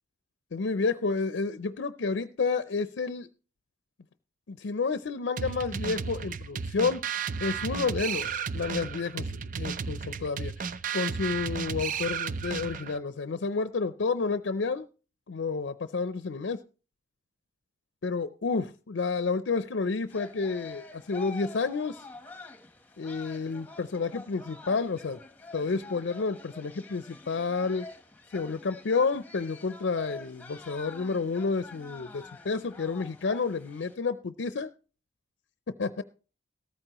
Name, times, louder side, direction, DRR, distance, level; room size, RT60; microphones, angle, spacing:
voice 1, 0.5-3.3 4.5-7.0 7.4-10.7 10.9-14.9 15.3-16.6 18.0-22.0 23.0-25.2 25.5-27.9 28.3-34.7 35.8-36.0, left 4 dB, 80° left, 12 dB, 0.5 m, -30 dB
sound 1, 5.4-13.0, right 6 dB, 45° right, 0.5 m, -34 dB
sound 2, 20.1-33.9, left 3 dB, 10° left, 1.1 m, -47 dB
15.0 x 13.5 x 3.0 m, 0.37 s
head